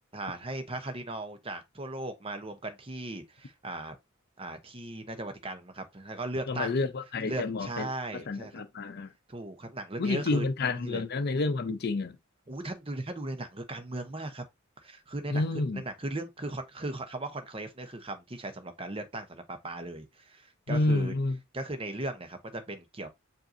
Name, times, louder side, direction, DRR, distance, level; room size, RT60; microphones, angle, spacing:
voice 1, 0.1-3.9 4.4-6.8 7.2-8.6 9.3-10.5 10.8-11.0 12.5-14.4 14.8-21.1 21.5-23.1, right 2 dB, 25° right, 0.8 m, -37 dB
voice 2, 6.5-7.9 8.1-9.1 10.0-12.2 15.3-15.8 20.7-21.4, left 3 dB, 50° left, 0.5 m, -29 dB
7.5 x 2.6 x 2.6 m
head